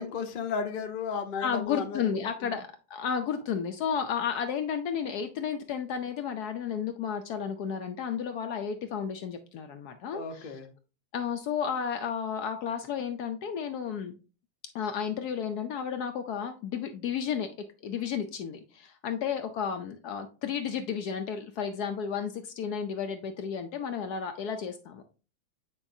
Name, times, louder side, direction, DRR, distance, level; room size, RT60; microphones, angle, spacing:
voice 1, 0.0-2.5 10.1-10.7, left 5 dB, 45° left, 5 dB, 0.7 m, -34 dB
voice 2, 1.4-10.6 11.1-14.1 14.7-17.5 17.8-25.0, left 7 dB, 70° left, 7 dB, 1.0 m, -32 dB
8.7 x 4.6 x 2.6 m, 0.35 s
omnidirectional pair, 2.0 m